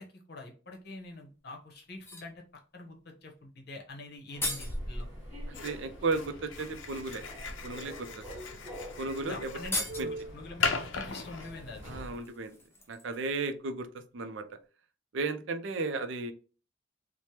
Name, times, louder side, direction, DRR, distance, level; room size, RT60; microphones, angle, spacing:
voice 1, 0.0-2.4 2.7-5.1 9.2-11.8, left 2 dB, 55° left, 1 dB, 0.9 m, -45 dB
sound 1, 1.0-1.1 1.9-2.4 3.8-3.9 4.1-4.8 6.2-6.3 6.9-7.2 8.1-8.2 8.5-8.7 8.9-9.0 9.5-10.3 11.4-13.4 13.7-13.8, left 1 dB, 10° left, 0.5 m, -39 dB
Human voice / Subway metro underground, 4.3-12.3, right 1 dB, 10° right, 1.3 m, -43 dB
sound 2, 5.5-11.9, left 5 dB, 75° left, 0.5 m, -38 dB
voice 2, 5.5-7.2 7.6-8.2 9.0-9.5 10.0-10.1 11.9-12.5 12.9-13.9 14.1-14.4 15.1-16.3, right 3 dB, 70° right, 9 dB, 0.4 m, -34 dB
3.3 x 2.1 x 2.8 m, 0.36 s
head